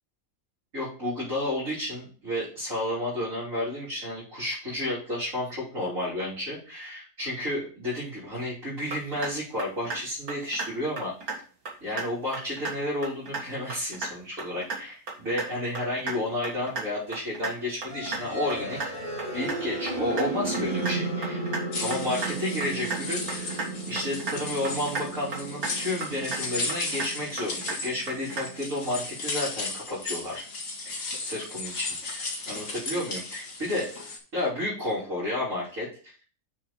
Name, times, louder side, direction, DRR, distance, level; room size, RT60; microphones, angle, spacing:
voice 1, 0.7-11.1 11.8-18.8 19.3-21.4 21.8-30.4 30.8-33.9 34.3-35.9, left 1 dB, 60° right, -9 dB, 3.7 m, -31 dB
sound 1, 8.9-9.3 9.6-10.0 10.3-10.7 11.0-11.4 11.7-12.0 12.3-12.7 13.0-13.4 13.7-14.1 14.4-14.8 15.1-15.5 15.8-16.1 16.4-16.8 17.1-17.5 17.8-18.2 18.5-18.9 19.2-19.6 19.9-20.2 20.5-20.9 21.2-21.6 21.9-22.3 22.6-23.0 23.3-23.7 24.0-24.4 24.6-25.1 25.3-25.7 26.0-26.4 26.7-27.1 27.4-27.8 28.1-28.4, right 4 dB, 85° right, 2.4 m, -33 dB
sound 2, 17.9-29.8, right 2 dB, 30° right, 3.0 m, -35 dB
sound 3, 21.7-34.2, left 3 dB, 65° left, 2.0 m, -35 dB
6.4 x 6.3 x 4.3 m, 0.40 s
omnidirectional pair, 1.5 m